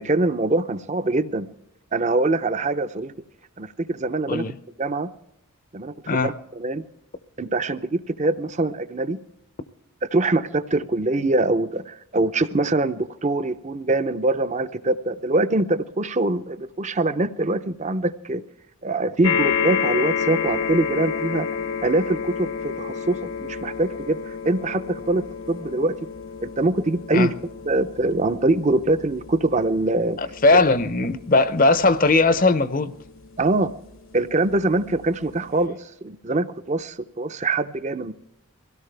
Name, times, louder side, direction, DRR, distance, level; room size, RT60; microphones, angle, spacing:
voice 1, 0.0-1.5 1.9-3.1 3.6-4.4 4.8-5.1 5.7-6.8 7.4-9.2 10.1-18.4 18.8-21.5 21.8-25.2 25.5-25.9 26.4-27.3 27.7-30.2 30.5-30.6 33.4-33.7 34.1-38.1, right 2 dB, 30° right, 0.6 m, -23 dB
sound 1, 19.2-33.8 34.5-34.6 34.9-35.0, left 7 dB, 65° left, 1.0 m, -30 dB
voice 2, 30.2-32.9, left 3 dB, 40° left, 0.7 m, -19 dB
23.0 x 16.5 x 3.4 m
head